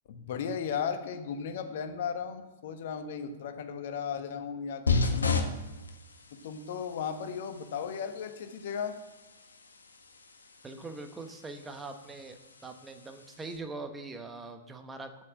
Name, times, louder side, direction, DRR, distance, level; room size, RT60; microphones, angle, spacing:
voice 1, 0.1-5.5 6.4-8.9, left 7 dB, 55° left, 7 dB, 1.2 m, -36 dB
sound 1, 4.9-13.6, left 4 dB, 75° left, 1.3 m, -35 dB
voice 2, 10.6-15.2, right 3 dB, 10° right, 6 dB, 1.1 m, -42 dB
8.2 x 7.5 x 7.6 m, 1.1 s
figure-of-eight pair, 105°, 0 cm